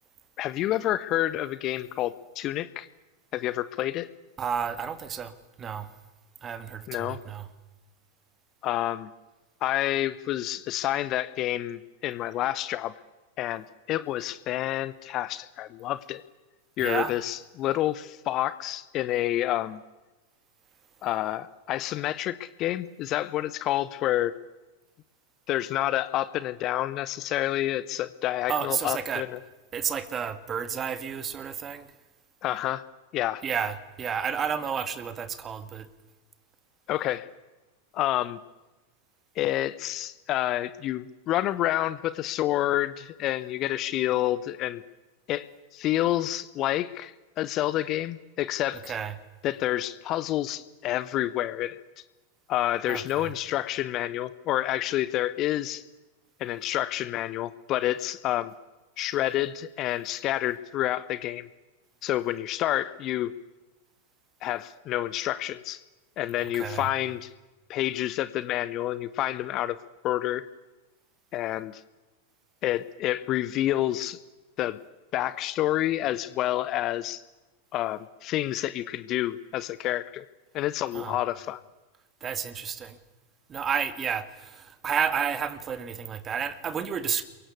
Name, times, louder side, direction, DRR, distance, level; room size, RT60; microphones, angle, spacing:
voice 1, 0.4-2.9 3.3-4.1 6.9-7.2 8.6-9.1 9.6-12.9 13.4-16.2 16.8-19.8 21.0-24.4 25.5-29.4 32.4-32.8 33.1-33.4 36.9-37.3 37.9-38.4 39.4-44.8 45.3-45.5 45.7-49.0 49.4-51.8 52.5-55.8 56.4-58.5 59.0-61.5 62.0-63.3 64.4-65.8 66.2-67.3 67.7-69.8 70.0-70.5 71.3-71.8 72.6-74.2 74.6-74.8 75.1-77.2 77.7-80.2 80.5-81.6, left 14 dB, 35° left, 0.9 m, -28 dB
voice 2, 4.4-5.3 5.6-5.9 6.4-7.5 16.8-17.1 28.5-29.3 29.7-31.9 33.4-35.9 48.9-49.2 52.9-53.3 66.5-66.9 80.9-81.2 82.2-83.0 83.5-87.2, right 7 dB, 25° right, 2.1 m, -31 dB
28.0 x 23.0 x 8.3 m
figure-of-eight pair, 90°, 0 cm